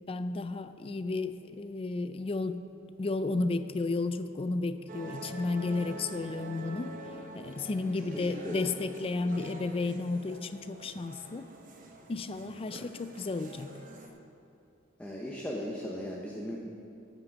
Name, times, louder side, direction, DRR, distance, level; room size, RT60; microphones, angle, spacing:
voice 1, 0.1-2.6 3.0-6.9 7.3-11.5 12.1-13.7, left 3 dB, 30° left, 11 dB, 0.4 m, -33 dB
sound 1, 4.9-14.1, right 1 dB, 45° right, 1.0 m, -46 dB
voice 2, 7.7-8.7 15.0-16.6, equal, 5° left, -3 dB, 0.8 m, -38 dB
9.3 x 6.0 x 7.9 m, 2.6 s
head